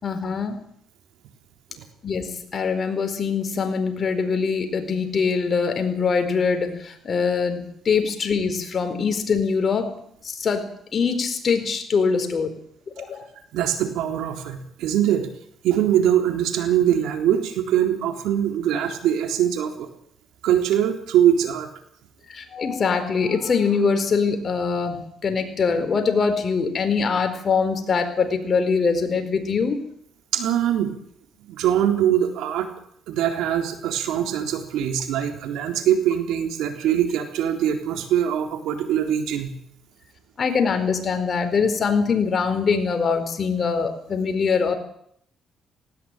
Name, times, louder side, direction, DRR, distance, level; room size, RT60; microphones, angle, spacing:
voice 1, 0.0-0.6 2.0-10.0 10.2-12.5 13.0-13.3 22.3-29.8 40.4-44.7, left 5 dB, 45° left, 7 dB, 4.5 m, -23 dB
voice 2, 13.5-15.3 15.6-19.9 20.4-21.7 30.3-30.9 31.5-32.7 33.1-39.5, right 10 dB, 90° right, 6 dB, 3.7 m, -22 dB
18.5 x 18.0 x 9.1 m, 0.69 s
cardioid pair, 90°, 0 cm